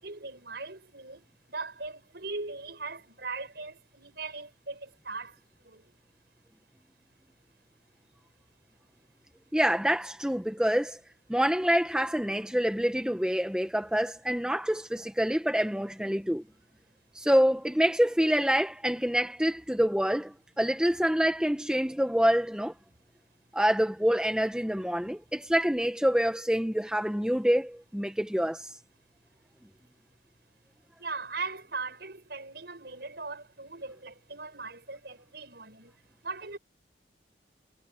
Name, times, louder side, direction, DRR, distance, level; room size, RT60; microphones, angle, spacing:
voice 1, 0.0-5.9 31.0-36.0 36.2-36.6, right 3 dB, 60° right, 6.1 m, -39 dB
voice 2, 9.5-11.0 11.3-16.4 17.1-22.7 23.5-28.7, equal, 5° right, 1.0 m, -26 dB
head